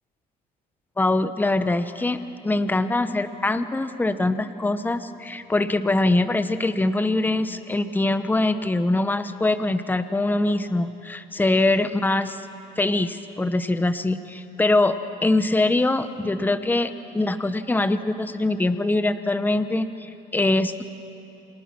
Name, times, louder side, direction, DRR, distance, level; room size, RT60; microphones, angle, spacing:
voice 1, 1.0-2.2 2.4-12.4 12.8-20.8, left 2 dB, 10° left, 11 dB, 1.0 m, -23 dB
29.0 x 26.0 x 6.1 m, 2.9 s
cardioid pair, 110°, 17 cm